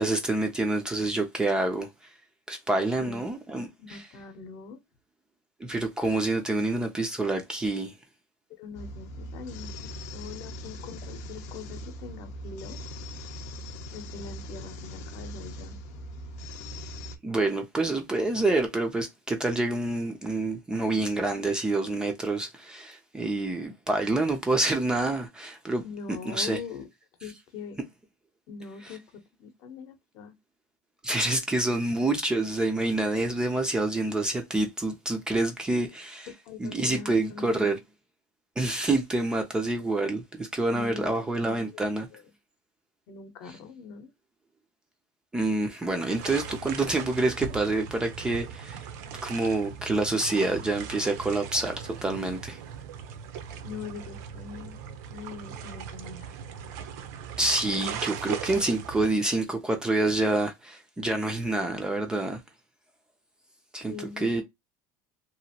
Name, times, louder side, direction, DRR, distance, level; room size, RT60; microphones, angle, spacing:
voice 1, 0.0-1.9 2.5-4.0 5.6-7.9 17.2-25.8 26.3-26.6 28.8-29.0 31.0-36.3 36.6-37.8 38.6-42.1 45.3-48.9 49.2-52.6 57.4-62.4 63.7-64.4, right 2 dB, 10° right, 0.4 m, -27 dB
voice 2, 3.8-4.8 8.5-12.8 13.9-15.8 25.8-26.9 27.2-27.8 28.5-30.3 36.4-37.7 40.7-41.1 41.7-41.8 42.1-42.3 43.1-44.1 53.6-54.8 55.1-56.3 63.9-64.4, left 6 dB, 45° left, 0.7 m, -42 dB
sound 1, 8.7-17.2, equal, 85° left, 0.6 m, -40 dB
sound 2, 46.1-59.1, right 7 dB, 70° right, 0.6 m, -39 dB
2.9 x 2.5 x 2.7 m
cardioid pair, 165°, 9 cm